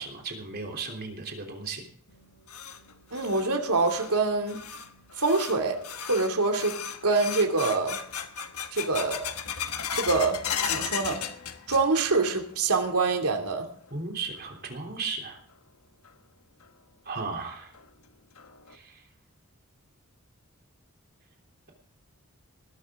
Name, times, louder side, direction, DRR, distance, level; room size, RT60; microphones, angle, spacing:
voice 1, 0.0-1.8 13.9-15.4 17.0-17.7 18.7-19.0, right 4 dB, 45° right, 2 dB, 3.3 m, -35 dB
sound 1, 2.1-12.2 12.5-13.1 13.5-13.6 14.3-14.4 16.0-16.1 16.6-16.7 17.2-17.3 17.7-17.8 18.4-18.7, left 8 dB, 80° left, 1.4 m, -36 dB
voice 2, 3.1-4.6 5.2-5.8 6.1-8.0 8.7-9.3 9.9-10.4 10.7-11.2 11.7-13.7, right 3 dB, 90° right, 3 dB, 2.7 m, -25 dB
19.5 x 12.0 x 3.7 m, 0.63 s
head